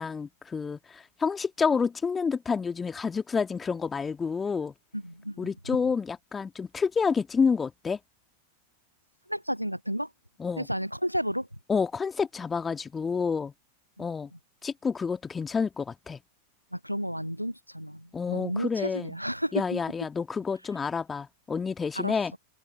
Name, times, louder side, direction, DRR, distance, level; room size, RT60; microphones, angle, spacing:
voice 1, 0.0-4.7 5.4-8.0 10.4-10.7 11.7-13.5 14.0-14.3 14.6-16.2 18.1-19.1 19.5-22.3, left 5 dB, 15° left, 2.0 m, -29 dB
voice 2, 4.9-5.5 9.3-10.1 10.6-11.5 16.7-19.8 22.0-22.2, equal, 90° right, 0.5 m, -32 dB
open air
figure-of-eight pair, 90°, 0 cm